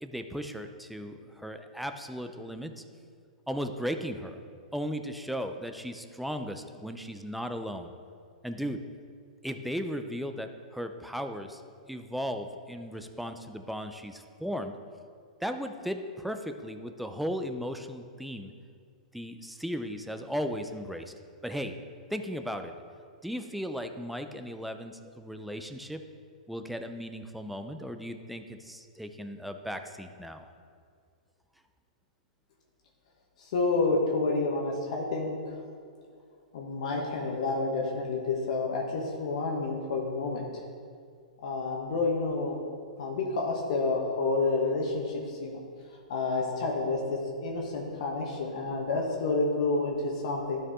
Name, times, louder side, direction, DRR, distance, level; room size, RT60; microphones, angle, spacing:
voice 1, 0.0-2.8 3.5-4.4 4.7-7.9 8.4-8.9 9.4-11.6 11.9-14.8 15.4-18.5 19.1-21.1 21.4-21.8 22.1-22.7 23.2-26.0 26.5-30.5, equal, ahead, 7 dB, 0.5 m, -36 dB
voice 2, 33.4-35.5 36.5-40.5 41.4-42.6 43.0-45.6 46.1-50.6, left 3 dB, 60° left, -1 dB, 1.2 m, -29 dB
12.0 x 4.7 x 3.6 m, 2.2 s
hypercardioid pair, 120°, 4 cm